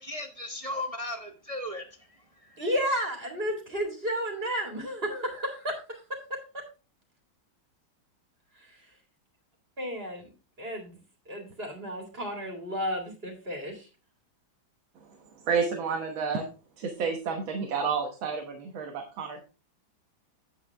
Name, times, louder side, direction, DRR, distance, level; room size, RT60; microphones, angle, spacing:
voice 1, 0.0-2.8, left 1 dB, 65° right, 4 dB, 0.3 m, -37 dB
voice 2, 2.6-6.4 8.6-8.7 9.8-10.3 10.6-11.0 11.3-13.9, equal, 30° right, 2 dB, 2.4 m, -32 dB
voice 3, 15.4-16.5 16.8-19.4, right 5 dB, 85° right, 3 dB, 2.0 m, -30 dB
9.1 x 8.0 x 3.4 m, 0.33 s
omnidirectional pair, 2.1 m